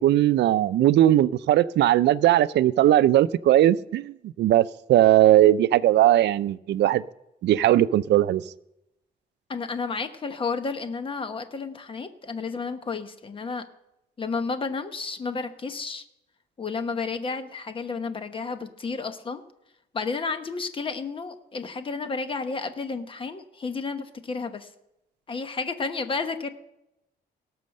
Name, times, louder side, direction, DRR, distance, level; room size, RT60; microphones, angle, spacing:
voice 1, 0.0-7.0 7.4-8.4, right 13 dB, 85° right, 17 dB, 0.4 m, -19 dB
voice 2, 9.5-13.6 14.2-16.0 16.6-19.4 19.9-24.7 25.3-26.5, left 4 dB, 30° left, 9 dB, 1.0 m, -31 dB
18.0 x 6.3 x 6.5 m, 0.86 s
wide cardioid pair, 155°, 17 cm